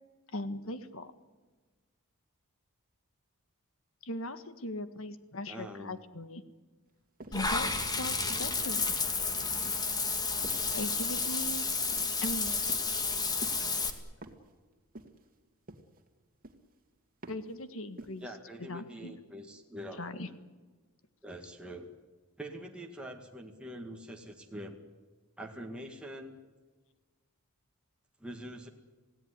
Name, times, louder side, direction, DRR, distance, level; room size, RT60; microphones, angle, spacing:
voice 1, 0.3-1.1 4.0-6.4 7.3-9.0 10.7-11.6 12.2-12.6 17.3-18.3 18.6-19.1 20.0-20.3, left 1 dB, 65° left, 11 dB, 1.7 m, -39 dB
voice 2, 5.5-6.0 18.2-20.3 21.2-21.9 22.4-24.8 25.4-26.4 28.2-28.7, equal, 5° right, 1 dB, 2.0 m, -44 dB
sound 1, 7.2-7.5 8.0-9.1 9.6-9.9 10.4-10.8 11.2-11.5 11.9-12.3 12.7-13.1 13.4-13.8 14.2-14.5 14.9-15.3 15.7-16.1 16.4-16.8 17.2-17.6 18.0-18.3, right 2 dB, 40° right, 2.3 m, -49 dB
Water / Bathtub (filling or washing), 7.3-13.9, left 4 dB, 20° left, 2.0 m, -31 dB
28.0 x 17.5 x 9.9 m, 1.3 s
head